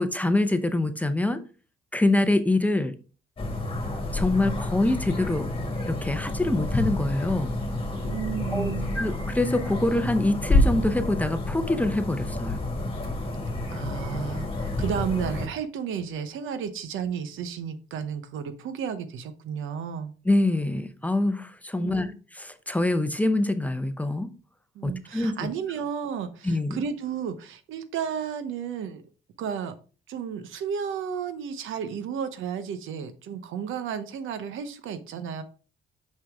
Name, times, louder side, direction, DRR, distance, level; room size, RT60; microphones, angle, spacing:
voice 1, 0.0-1.4 1.9-2.9 4.1-5.5 5.9-7.5 8.5-12.6 20.3-22.1 22.3-24.3 24.8-25.5 26.4-26.8, left 2 dB, 5° left, 9 dB, 0.7 m, -25 dB
sound 1, 3.4-15.5, left 2 dB, 25° left, 1.9 m, -29 dB
voice 2, 8.0-8.9 13.7-20.1 21.8-22.1 24.7-29.0 29.4-29.8 30.1-35.4, right 7 dB, 80° right, 11 dB, 0.9 m, -33 dB
6.1 x 5.6 x 3.5 m, 0.37 s
cardioid pair, 90°, 20 cm